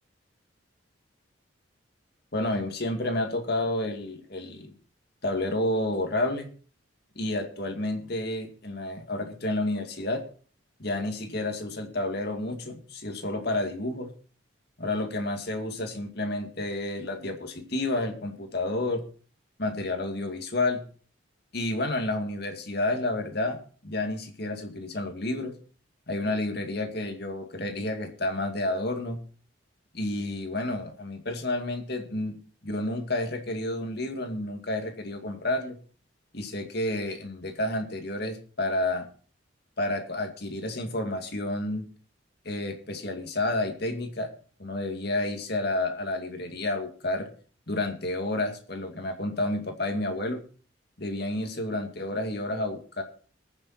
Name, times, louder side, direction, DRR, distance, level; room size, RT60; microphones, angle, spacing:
voice 1, 2.3-4.7 5.2-6.5 7.2-10.2 10.8-14.1 14.8-19.0 19.6-20.8 21.5-25.5 26.1-29.2 29.9-32.4 32.6-35.8 36.3-39.1 39.8-41.9 42.4-44.3 44.6-47.3 47.7-50.4 51.0-53.0, left 2 dB, 55° left, 5 dB, 2.3 m, -30 dB
21.5 x 7.2 x 4.3 m, 0.41 s
head